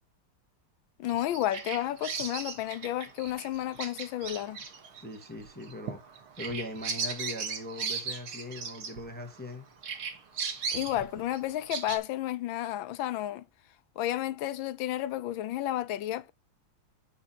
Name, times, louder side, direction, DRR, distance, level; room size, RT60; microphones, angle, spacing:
voice 1, 1.0-4.6 10.7-13.4 14.0-16.3, left 13 dB, 75° left, 1.4 m, -32 dB
Bird vocalization bird call bird song, 1.1-9.5 9.8-12.0, right 5 dB, 90° right, 2.5 m, -37 dB
voice 2, 5.0-9.7, left 1 dB, 5° left, 1.5 m, -40 dB
7.2 x 6.4 x 4.3 m
omnidirectional pair, 2.3 m